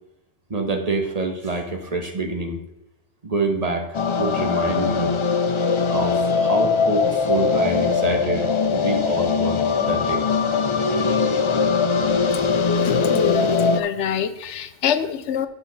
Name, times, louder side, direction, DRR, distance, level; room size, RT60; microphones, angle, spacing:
voice 1, 0.5-2.6 3.2-5.1 5.9-10.2, right 3 dB, 35° right, 3 dB, 1.3 m, -26 dB
sound 1, 3.9-13.8, left 5 dB, 45° left, 0.4 m, -21 dB
voice 2, 12.6-15.5, left 8 dB, 85° left, 11 dB, 1.0 m, -26 dB
8.3 x 7.2 x 4.0 m, 0.91 s
omnidirectional pair, 1.2 m